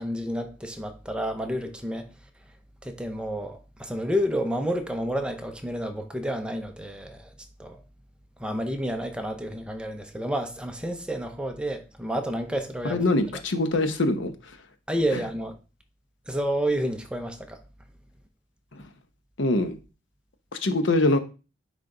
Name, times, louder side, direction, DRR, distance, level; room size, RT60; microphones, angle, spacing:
voice 1, 0.0-2.1 2.8-7.3 7.6-7.8 8.4-13.0 14.9-15.6 16.3-17.6, equal, 5° right, 0.7 m, -30 dB
voice 2, 12.8-14.6 18.7-18.9 19.4-19.8 20.5-21.2, left 2 dB, 80° left, 0.9 m, -24 dB
9.5 x 3.3 x 3.8 m
head